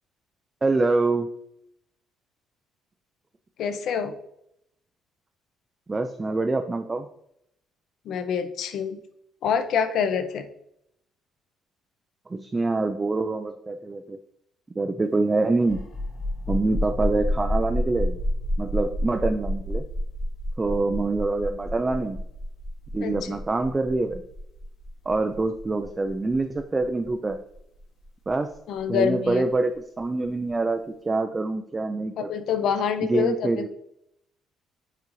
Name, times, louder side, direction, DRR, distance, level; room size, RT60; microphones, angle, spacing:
voice 1, 0.6-1.3 5.9-7.1 12.3-14.2 14.8-15.8 16.5-18.2 18.6-19.8 20.6-22.2 22.9-24.2 25.1-27.4 28.3-28.5 28.9-29.7 30.0-32.3 33.0-33.7, right 3 dB, 15° right, 6 dB, 0.3 m, -25 dB
voice 2, 3.6-4.1 8.1-9.0 9.4-10.4 23.0-23.3 28.7-29.4 32.2-33.7, left 7 dB, 55° left, 9 dB, 0.6 m, -26 dB
sound 1, 15.6-29.0, left 1 dB, 70° left, 2.0 m, -30 dB
8.9 x 3.8 x 3.1 m, 0.76 s
cardioid pair, 180°, 0 cm